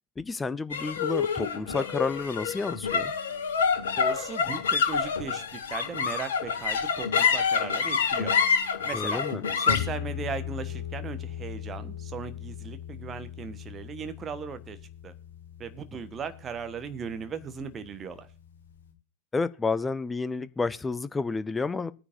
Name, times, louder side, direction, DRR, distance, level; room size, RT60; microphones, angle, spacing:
voice 1, 0.2-3.1 8.9-9.4 19.3-21.9, left 4 dB, 10° left, 0.6 m, -30 dB
sound 1, 0.7-17.3, left 6 dB, 60° left, 1.8 m, -29 dB
voice 2, 4.0-8.3 8.8-9.2 9.6-14.8 15.0-15.1 15.6-18.3, right 6 dB, 20° right, 1.3 m, -37 dB
19.5 x 9.8 x 2.7 m
figure-of-eight pair, 90°, 0 cm